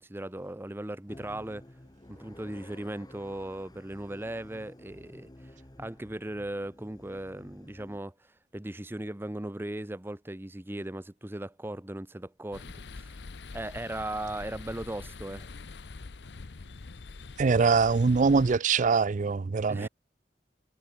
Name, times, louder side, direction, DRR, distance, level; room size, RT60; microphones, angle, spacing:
voice 1, 0.0-1.7 2.1-5.5 5.8-8.1 8.5-13.2 13.5-15.5 19.7-19.9, right 1 dB, 15° right, 0.8 m, -38 dB
sound 1, 1.1-8.0, left 1 dB, 25° left, 1.3 m, -52 dB
sound 2, 12.5-18.6, left 3 dB, 70° left, 0.7 m, -44 dB
voice 2, 17.4-19.9, right 4 dB, 45° right, 0.4 m, -23 dB
head